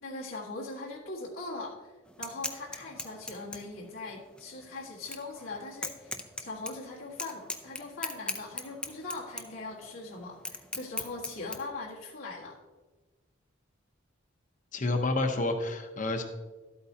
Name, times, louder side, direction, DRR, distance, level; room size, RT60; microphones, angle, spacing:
voice 1, 0.0-12.6, left 3 dB, 85° left, -5 dB, 1.8 m, -41 dB
sound 1, 2.1-11.6, left 2 dB, 5° left, 0.4 m, -40 dB
voice 2, 14.7-16.2, left 2 dB, 40° left, 5 dB, 0.9 m, -29 dB
12.5 x 8.4 x 2.8 m, 1.3 s
head